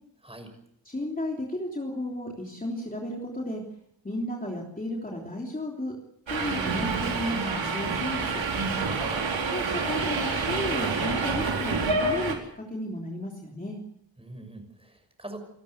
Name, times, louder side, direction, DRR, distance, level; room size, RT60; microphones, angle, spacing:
voice 1, 0.8-3.6 4.0-6.0 6.3-8.4 9.5-13.8, left 1 dB, 20° left, -1 dB, 3.3 m, -33 dB
Subway metro underground, 6.3-12.3, right 4 dB, 85° right, 4.4 m, -28 dB
voice 2, 8.8-9.3 14.2-15.4, right 1 dB, 10° right, 6 dB, 6.3 m, -43 dB
29.0 x 13.5 x 8.1 m, 0.75 s
wide cardioid pair, 115°, 45 cm